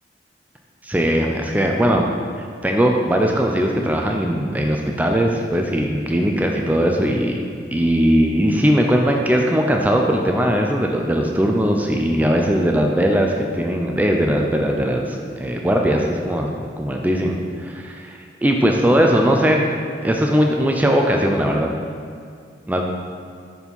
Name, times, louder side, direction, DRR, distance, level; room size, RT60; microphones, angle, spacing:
voice 1, 0.8-2.1 2.4-7.3 7.7-19.6 20.0-21.7 22.7-22.8, equal, 10° right, 1 dB, 0.4 m, -19 dB
6.8 x 4.4 x 5.4 m, 2.2 s
head